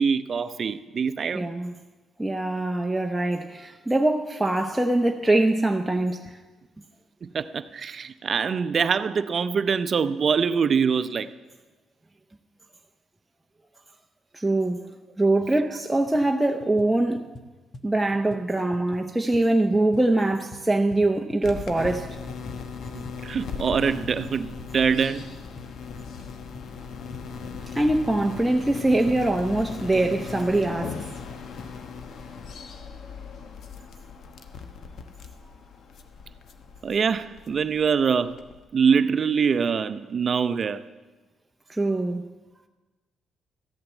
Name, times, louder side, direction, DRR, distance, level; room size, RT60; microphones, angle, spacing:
voice 1, 0.0-1.5 7.2-11.3 22.9-25.3 36.8-38.4 38.7-40.9, right 6 dB, 45° right, 0.6 m, -24 dB
voice 2, 1.3-1.7 2.2-6.4 14.3-14.8 15.2-17.3 17.8-22.2 27.7-31.0 41.7-42.2, right 2 dB, 10° right, 0.7 m, -23 dB
sound 1, 15.5-15.6 16.0-16.3 16.6-21.6 21.9-27.3, left 2 dB, 35° left, 1.1 m, -47 dB
sound 2, 21.4-38.6, left 5 dB, 65° left, 1.1 m, -38 dB
14.0 x 8.7 x 7.2 m
cardioid pair, 90°, 0 cm